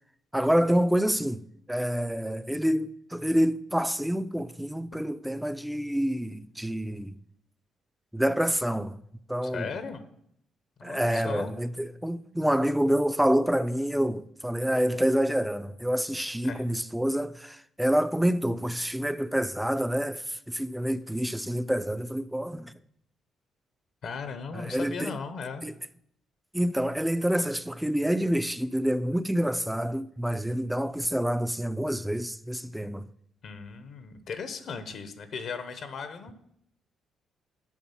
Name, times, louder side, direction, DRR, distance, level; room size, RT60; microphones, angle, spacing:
voice 1, 0.3-1.4 1.7-7.2 8.1-9.0 9.3-9.7 10.8-22.7 24.5-25.1 25.6-25.7 26.5-33.0, equal, 5° right, 0.4 m, -27 dB
voice 2, 9.5-10.0 10.8-11.5 16.4-16.6 24.0-25.7 33.4-36.3, left 5 dB, 65° left, 0.8 m, -37 dB
7.2 x 4.9 x 5.6 m
cardioid pair, 90°, 0 cm